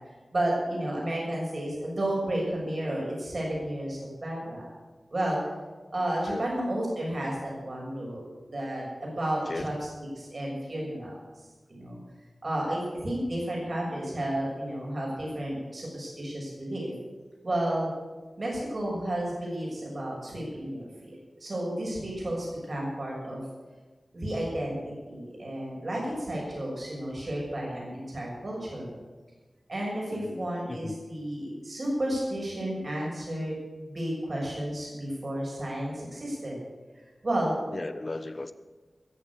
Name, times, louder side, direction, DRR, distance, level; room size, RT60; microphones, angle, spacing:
voice 1, 0.3-4.7 5.1-5.4 5.9-9.7 10.2-11.1 11.8-12.0 12.4-16.9 17.4-17.9 18.4-23.4 24.1-28.9 29.7-33.5 33.8-36.6 37.2-37.5, right 1 dB, 55° right, -3 dB, 6.8 m, -32 dB
voice 2, 30.1-31.0 37.7-38.5, left 2 dB, 45° left, 12 dB, 1.0 m, -36 dB
20.5 x 7.6 x 8.5 m, 1.3 s
wide cardioid pair, 70°, 0 cm